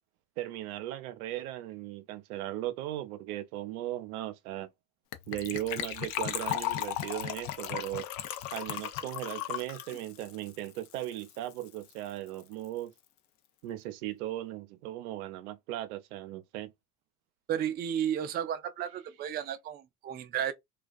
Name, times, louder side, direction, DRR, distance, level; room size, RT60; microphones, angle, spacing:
voice 1, 0.4-4.7 5.3-8.0 8.5-12.9 13.6-16.7, right 14 dB, 80° right, 0.6 m, -37 dB
Gurgling / Trickle dribble / Fill (with liquid), 5.1-11.4 11.6-11.7 11.9-12.1 12.4-12.5, left 12 dB, 50° left, 0.7 m, -36 dB
voice 2, 17.5-20.5, right 9 dB, 25° right, 0.4 m, -33 dB
2.3 x 2.2 x 2.3 m
hypercardioid pair, 75°, 43 cm